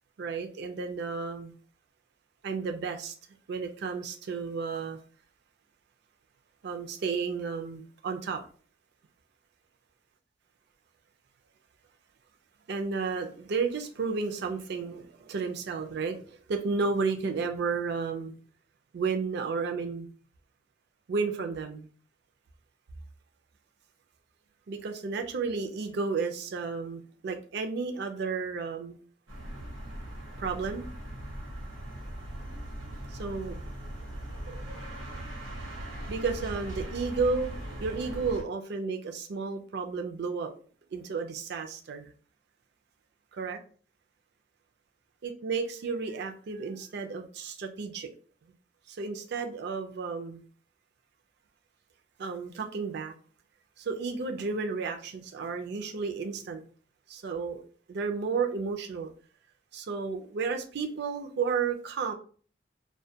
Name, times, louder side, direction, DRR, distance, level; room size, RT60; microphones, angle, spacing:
voice 1, 0.2-1.5 2.4-3.1 3.5-5.0 6.6-8.4 12.7-18.3 18.9-20.1 21.1-21.9 24.7-29.0 30.4-30.9 33.1-33.6 36.1-37.5 37.8-40.5 40.9-42.1 43.4-43.6 45.2-48.1 48.9-50.4 52.2-53.1 53.8-56.6 57.1-57.6 57.9-59.1 59.7-62.1, right 4 dB, 60° right, 5 dB, 0.4 m, -32 dB
sound 1, 29.3-38.4, right 1 dB, 85° right, 0.8 m, -39 dB
2.2 x 2.1 x 2.7 m, 0.42 s
head